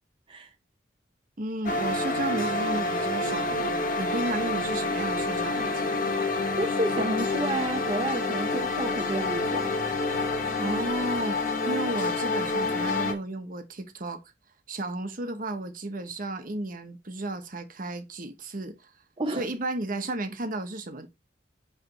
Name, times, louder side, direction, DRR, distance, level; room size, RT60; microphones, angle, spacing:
voice 1, 1.4-6.0 10.5-14.2 14.7-18.9 19.3-21.1, right 1 dB, 50° right, 1.1 m, -33 dB
sound 1, 1.6-13.1, left 2 dB, 50° left, 1.3 m, -28 dB
voice 2, 6.6-9.7 19.2-19.4, right 1 dB, 30° right, 0.7 m, -30 dB
8.1 x 3.4 x 4.3 m
head